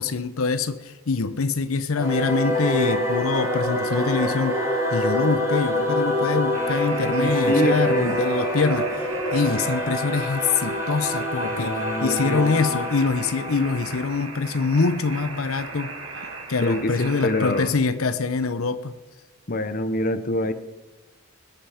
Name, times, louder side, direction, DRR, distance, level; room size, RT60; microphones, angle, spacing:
voice 1, 0.0-4.6 4.9-15.9 16.5-18.9, left 4 dB, 80° left, 12 dB, 0.7 m, -24 dB
Singing / Musical instrument, 1.9-14.8, equal, 15° right, 4.1 m, -26 dB
sound 1, 6.5-17.7, right 3 dB, 70° right, 3.6 m, -37 dB
voice 2, 7.2-8.2 11.4-12.8 16.6-17.7 19.5-20.5, left 2 dB, 45° left, 11 dB, 0.9 m, -26 dB
21.0 x 8.7 x 5.0 m, 1.1 s
head